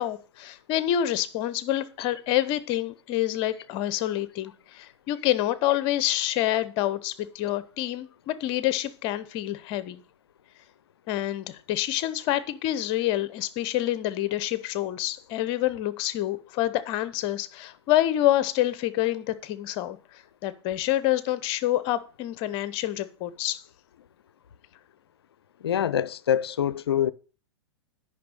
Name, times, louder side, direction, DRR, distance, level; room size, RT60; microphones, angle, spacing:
voice 1, 0.0-10.0 11.1-23.6, left 13 dB, 35° left, 0.8 m, -27 dB
voice 2, 25.6-27.1, left 10 dB, 60° left, 0.5 m, -25 dB
9.4 x 5.7 x 6.4 m
figure-of-eight pair, 105°, 14 cm